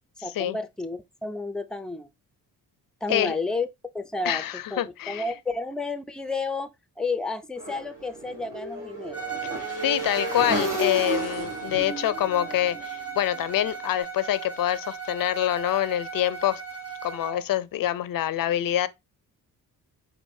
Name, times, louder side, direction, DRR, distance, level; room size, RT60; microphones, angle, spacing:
voice 1, 0.2-2.1 3.0-3.7 3.9-4.4 4.7-6.7 7.0-9.2, left 3 dB, ahead, 0.4 m, -31 dB
voice 2, 4.2-5.2 9.8-16.6 17.0-18.9, left 12 dB, 60° left, 0.5 m, -26 dB
Motorcycle / Engine, 7.6-13.7, right 1 dB, 55° right, 2.3 m, -33 dB
Bowed string instrument, 9.1-17.4, right 6 dB, 35° right, 1.8 m, -37 dB
4.7 x 2.6 x 2.6 m
cardioid pair, 85°, 39 cm